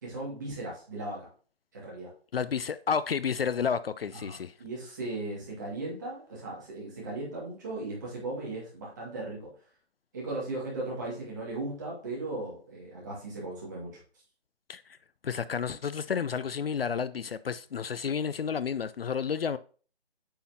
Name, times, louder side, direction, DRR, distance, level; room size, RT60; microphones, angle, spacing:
voice 1, 0.0-1.3 1.7-2.1 4.1-9.5 10.1-14.0, right 2 dB, 20° right, 2.0 m, -37 dB
voice 2, 2.3-4.5 14.7-14.8 15.2-19.6, left 6 dB, 65° left, 0.4 m, -31 dB
8.6 x 5.6 x 2.8 m
hypercardioid pair, 175°, 31 cm